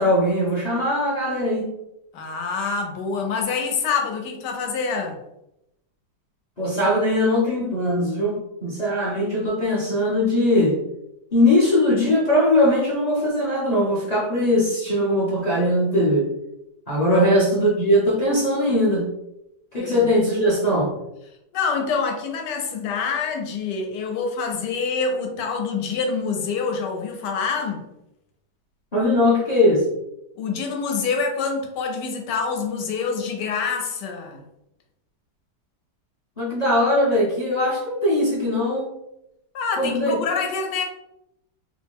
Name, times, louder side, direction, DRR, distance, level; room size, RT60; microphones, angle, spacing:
voice 1, 0.0-1.7 6.6-10.7 11.3-16.3 16.9-19.1 19.7-20.9 28.9-29.8 36.4-38.9 39.8-40.2, left 1 dB, 45° left, -7 dB, 0.5 m, -20 dB
voice 2, 2.1-5.2 17.1-17.3 19.8-20.1 21.5-27.8 30.4-34.4 39.5-40.8, left 5 dB, 80° left, 3 dB, 1.2 m, -26 dB
3.3 x 2.1 x 3.4 m, 0.85 s
omnidirectional pair, 1.8 m